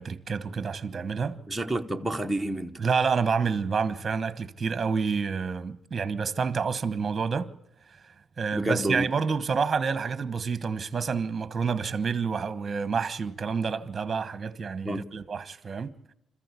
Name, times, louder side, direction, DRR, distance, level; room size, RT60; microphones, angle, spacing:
voice 1, 0.0-1.4 2.8-7.5 8.4-15.9, right 5 dB, 30° right, 1.2 m, -28 dB
voice 2, 1.5-2.8 8.5-9.1 14.8-15.1, right 1 dB, 5° right, 1.0 m, -29 dB
26.5 x 14.5 x 8.4 m
cardioid pair, 130°, 0 cm